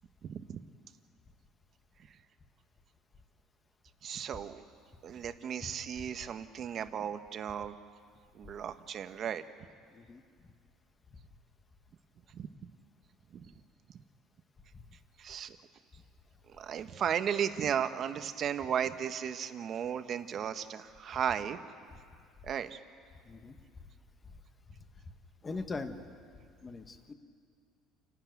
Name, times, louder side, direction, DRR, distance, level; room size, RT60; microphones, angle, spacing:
voice 1, 0.2-0.6 4.0-4.6 5.0-7.7 8.3-9.4 12.3-12.5 13.3-13.4 15.2-15.6 16.6-21.6 22.4-22.8, right 8 dB, 40° right, 10 dB, 1.0 m, -35 dB
voice 2, 9.9-10.5 11.1-11.2 14.7-14.8 23.2-23.5 24.2-24.4 25.4-26.0 26.6-27.1, left 3 dB, 20° left, 8 dB, 1.3 m, -42 dB
29.0 x 12.0 x 9.4 m, 2.2 s
cardioid pair, 145°, 0 cm